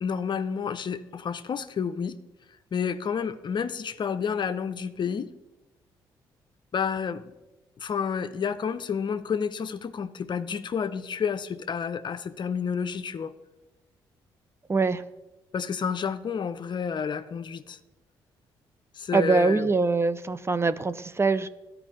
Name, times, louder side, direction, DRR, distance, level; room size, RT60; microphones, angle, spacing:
voice 1, 0.0-2.2 2.7-5.3 6.7-7.2 7.8-13.3 15.5-17.8 19.0-19.7, left 6 dB, 45° left, 11 dB, 0.6 m, -30 dB
voice 2, 14.7-15.0 19.1-21.5, right 4 dB, 25° right, 13 dB, 0.5 m, -23 dB
14.0 x 5.0 x 3.0 m, 1.1 s
hypercardioid pair, 45°, 11 cm